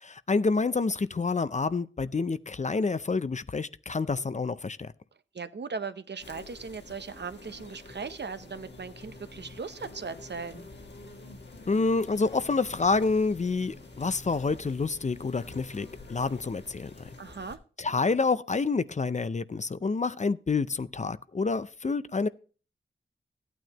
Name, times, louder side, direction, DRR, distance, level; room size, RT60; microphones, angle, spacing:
voice 1, 0.0-4.9 11.7-16.9 17.8-22.3, left 4 dB, 35° left, 0.5 m, -28 dB
voice 2, 5.3-10.6 17.2-17.6, right 5 dB, 60° right, 0.8 m, -38 dB
sound 1, 6.2-17.6, left 2 dB, 60° left, 1.6 m, -47 dB
14.0 x 9.2 x 2.9 m
wide cardioid pair, 55°, 20 cm